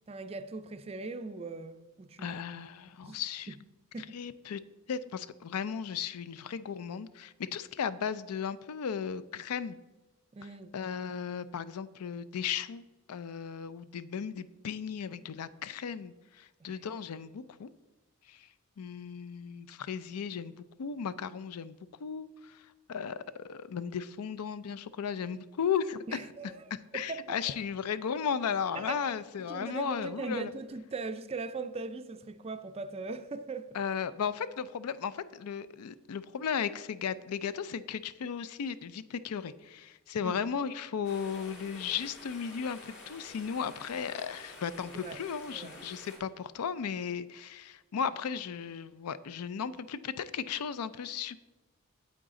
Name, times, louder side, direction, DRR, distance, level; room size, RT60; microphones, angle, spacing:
voice 1, 0.1-2.4 3.0-3.2 3.9-4.1 10.3-10.7 16.6-16.8 26.1-26.6 26.9-27.5 28.8-29.1 29.5-33.7 40.2-40.4 44.9-45.2 45.5-45.8, right 3 dB, 25° right, 0.4 m, -40 dB
voice 2, 2.2-3.5 4.1-4.6 4.9-9.8 10.4-17.7 18.3-18.5 18.8-22.6 22.9-26.2 26.9-30.5 33.7-51.4, left 7 dB, 85° left, 0.4 m, -35 dB
sound 1, 41.0-46.2, left 2 dB, 55° left, 1.9 m, -49 dB
8.9 x 7.9 x 3.7 m
head